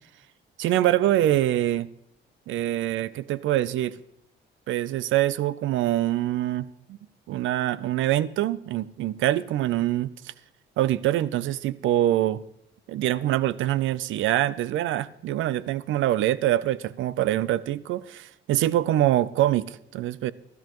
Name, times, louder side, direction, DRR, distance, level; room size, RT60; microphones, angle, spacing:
voice 1, 0.6-1.9 2.5-4.0 4.7-7.0 7.3-10.3 10.8-12.4 12.9-20.3, right 13 dB, 80° right, 18 dB, 0.5 m, -24 dB
14.0 x 12.5 x 3.0 m, 0.77 s
cardioid pair, 90°, 20 cm